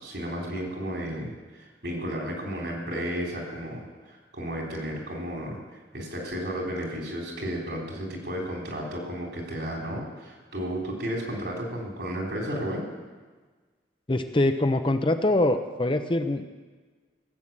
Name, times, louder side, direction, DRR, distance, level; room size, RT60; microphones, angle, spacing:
voice 1, 0.0-5.6 5.9-12.8, equal, 70° right, -1 dB, 3.8 m, -33 dB
voice 2, 14.1-16.5, left 1 dB, 30° left, 8 dB, 0.7 m, -24 dB
16.0 x 8.3 x 7.5 m, 1.4 s
head